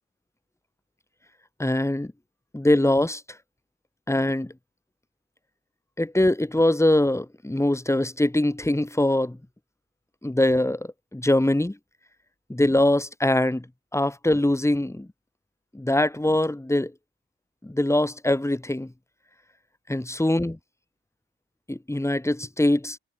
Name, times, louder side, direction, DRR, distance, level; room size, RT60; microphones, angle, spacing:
voice 1, 1.6-2.1 2.5-3.2 4.1-4.5 6.0-9.4 10.2-11.8 12.5-13.6 13.9-15.1 15.7-16.9 17.6-18.9 19.9-20.6 21.7-23.0, left 1 dB, 10° left, 5.7 m, -22 dB
hypercardioid pair, 50°, 29 cm